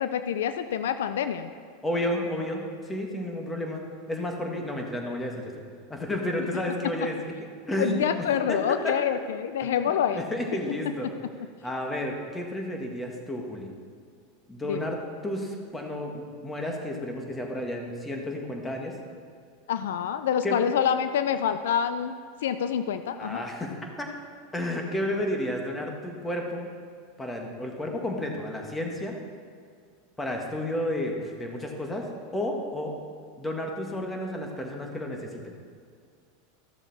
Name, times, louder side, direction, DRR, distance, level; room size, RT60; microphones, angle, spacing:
voice 1, 0.0-1.5 7.8-10.2 14.6-14.9 19.7-22.1 22.4-23.4, left 8 dB, 80° left, 11 dB, 0.4 m, -27 dB
voice 2, 1.8-3.8 4.1-5.5 5.9-7.3 7.7-8.1 8.5-8.6 8.8-8.9 9.6-11.1 11.6-13.7 14.5-18.9 20.4-20.6 23.2-24.1 24.5-26.7 27.2-29.1 30.2-32.9 33.4-35.5, left 1 dB, 10° left, 1 dB, 1.7 m, -32 dB
13.5 x 7.0 x 4.2 m, 2.1 s
hypercardioid pair, 105°, 0 cm